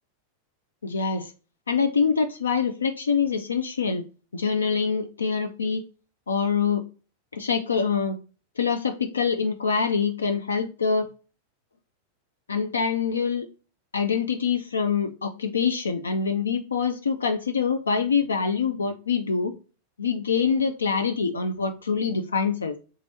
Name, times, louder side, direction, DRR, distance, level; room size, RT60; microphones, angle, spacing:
voice 1, 0.8-1.3 1.7-4.0 4.3-5.8 6.3-6.8 7.3-8.2 8.6-11.1 12.5-13.5 13.9-19.5 20.0-22.8, left 5 dB, 75° left, 7 dB, 0.3 m, -25 dB
3.6 x 3.0 x 4.0 m, 0.35 s
figure-of-eight pair, 90°, 0 cm